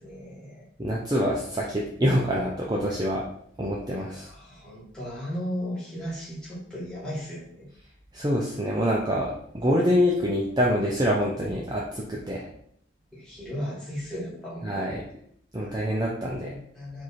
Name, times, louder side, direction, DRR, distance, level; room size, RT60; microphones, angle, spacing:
voice 1, 0.0-0.6 4.0-7.7 13.1-14.8 15.6-17.0, equal, 5° left, -8 dB, 1.5 m, -36 dB
voice 2, 0.8-3.2 3.6-4.3 8.1-12.4 14.6-15.0 15.5-16.6, equal, 20° right, -4 dB, 0.5 m, -25 dB
4.6 x 2.5 x 4.2 m, 0.66 s
head